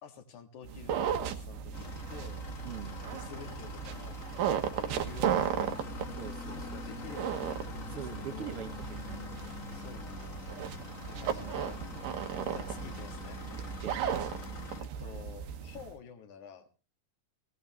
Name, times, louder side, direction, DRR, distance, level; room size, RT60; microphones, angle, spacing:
voice 1, 0.0-2.4 3.1-4.2 4.7-6.1 6.5-8.6 9.7-10.4 11.1-11.8 12.5-13.4 14.8-16.7, left 7 dB, 65° left, 7 dB, 3.0 m, -49 dB
sound 1, 0.6-15.9, right 8 dB, 80° right, 2.9 m, -36 dB
sound 2, 1.7-14.8, left 4 dB, 45° left, 1.0 m, -45 dB
voice 2, 2.6-3.0 6.2-6.7 7.9-9.3 11.4-11.8 13.5-14.0, right 9 dB, 55° right, 7 dB, 1.9 m, -44 dB
19.0 x 17.0 x 3.0 m, 0.33 s
omnidirectional pair, 3.9 m